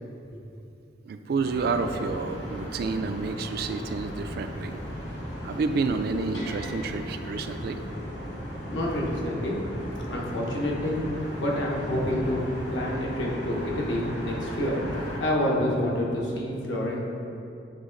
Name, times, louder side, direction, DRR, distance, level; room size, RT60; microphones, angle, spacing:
voice 1, 1.1-4.8 5.4-7.8, right 4 dB, 55° right, 8 dB, 0.3 m, -29 dB
sound 1, 1.4-15.2, equal, 70° left, 1.4 m, -36 dB
voice 2, 8.7-9.6 10.1-11.0 11.4-12.4 12.7-14.7 15.2-17.0, left 1 dB, 85° left, -3 dB, 1.0 m, -28 dB
8.0 x 3.1 x 3.8 m, 2.7 s
head